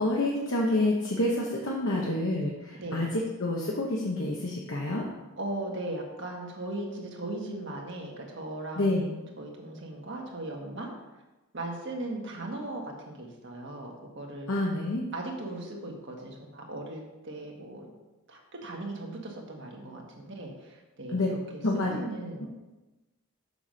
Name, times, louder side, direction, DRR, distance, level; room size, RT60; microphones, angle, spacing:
voice 1, 0.0-5.0 8.8-9.1 14.5-15.0 21.1-21.3 21.6-22.0 22.4-22.5, left 1 dB, 65° left, -2 dB, 1.0 m, -28 dB
voice 2, 2.8-3.1 5.4-10.9 11.5-14.5 15.1-17.9 18.3-21.6 21.9-22.5, right 2 dB, 55° right, 0 dB, 1.5 m, -38 dB
6.9 x 6.0 x 5.2 m, 1.1 s
head